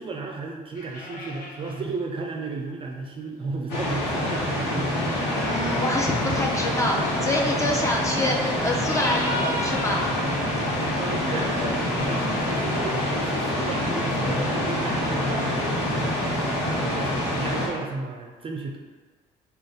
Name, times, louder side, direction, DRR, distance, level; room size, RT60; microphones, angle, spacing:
voice 1, 0.0-4.9 11.0-18.8, right 3 dB, 30° right, 1 dB, 0.5 m, -34 dB
sound 1, 0.8-1.9 2.6-2.7 3.6-7.7 8.3-8.4 8.8-11.8 12.4-13.9 14.3-14.4 14.7-14.8 15.3-15.4 15.6-16.7 17.8-17.9, left 1 dB, 55° left, 0.9 m, -38 dB
sound 2, 3.7-17.7, left 1 dB, 90° left, 1.1 m, -26 dB
voice 2, 5.4-10.1, left 1 dB, 20° left, -1 dB, 0.7 m, -26 dB
5.0 x 2.5 x 3.9 m, 1.4 s
cardioid pair, 110°, 17 cm